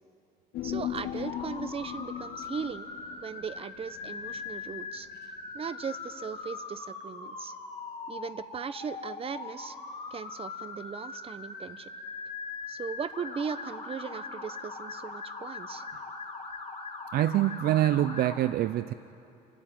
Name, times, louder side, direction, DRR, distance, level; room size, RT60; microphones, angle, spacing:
Human voice, 0.5-5.2 5.5-5.6, left 12 dB, 70° left, 0.6 m, -39 dB
voice 1, 0.6-2.9 3.2-5.1 5.5-7.6 8.1-9.8 10.1-11.9 12.7-15.8, right 6 dB, 35° right, 14 dB, 0.9 m, -38 dB
Motor vehicle (road) / Siren, 1.0-18.4, left 4 dB, 35° left, 4.2 m, -41 dB
voice 2, 17.1-18.9, right 13 dB, 65° right, 14 dB, 0.5 m, -25 dB
29.5 x 13.0 x 9.0 m, 2.6 s
cardioid pair, 110°, 17 cm